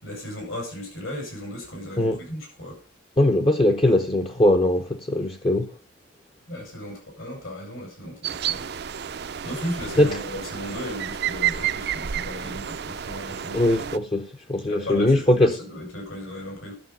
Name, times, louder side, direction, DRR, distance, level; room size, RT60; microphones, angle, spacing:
voice 1, 0.0-2.8 6.5-8.6 9.4-13.6 14.6-16.7, equal, 80° left, 6.7 m, -35 dB
voice 2, 3.2-5.7 10.0-10.1 13.5-15.6, left 1 dB, 25° left, 0.6 m, -20 dB
sound 1, 8.2-14.0, right 9 dB, 50° right, 0.5 m, -30 dB
12.0 x 7.4 x 5.5 m
head